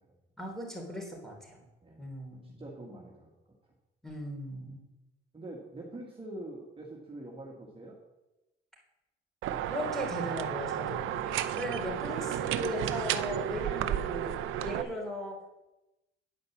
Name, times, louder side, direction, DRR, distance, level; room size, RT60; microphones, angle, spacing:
voice 1, 0.4-1.6 2.0-2.7 4.0-4.8 9.7-14.3 14.6-15.4, equal, ahead, -1 dB, 3.4 m, -38 dB
voice 2, 2.6-3.3 5.3-8.0, right 1 dB, 25° right, -2 dB, 1.8 m, -44 dB
sound 1, 9.4-14.8, right 10 dB, 85° right, 0.6 m, -32 dB
9.8 x 5.2 x 7.2 m, 0.99 s
cardioid pair, 90°, 20 cm